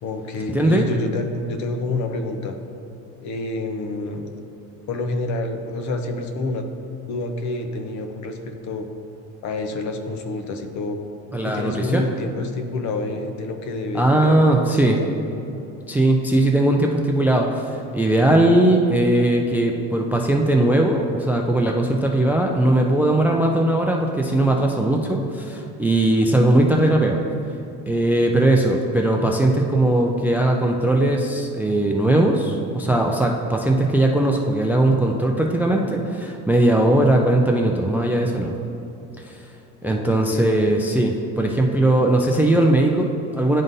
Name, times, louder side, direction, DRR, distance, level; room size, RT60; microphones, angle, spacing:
voice 1, 0.0-2.6 3.2-4.4 4.9-6.6 7.1-8.9 9.4-11.0 11.4-15.1 39.8-40.6, left 2 dB, 55° left, 6 dB, 0.8 m, -28 dB
voice 2, 0.5-0.9 11.3-12.0 13.9-15.0 15.9-27.2 27.9-38.5 39.2-39.4 39.8-43.6, right 1 dB, 5° right, 1 dB, 0.3 m, -19 dB
11.0 x 3.7 x 2.6 m, 2.7 s
supercardioid pair, 105°, 33 cm